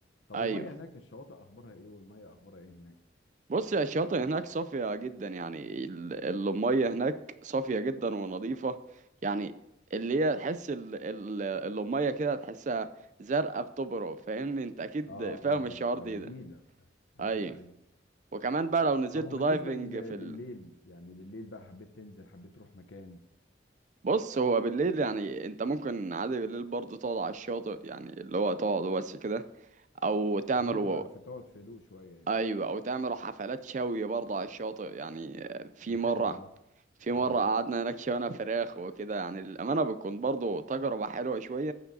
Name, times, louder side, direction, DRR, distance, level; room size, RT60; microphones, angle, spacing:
voice 1, 0.3-3.0 15.0-16.9 17.1-17.8 19.1-23.2 30.6-32.3 35.8-36.5 37.1-37.5, left 2 dB, 75° left, 0.9 m, -46 dB
voice 2, 3.5-7.2 7.4-8.8 9.2-9.5 9.9-12.9 13.2-16.3 17.2-17.6 18.3-20.3 24.0-29.4 30.0-31.0 32.3-36.4 37.0-41.7, right 3 dB, 40° right, 0.4 m, -31 dB
16.0 x 6.9 x 2.7 m
head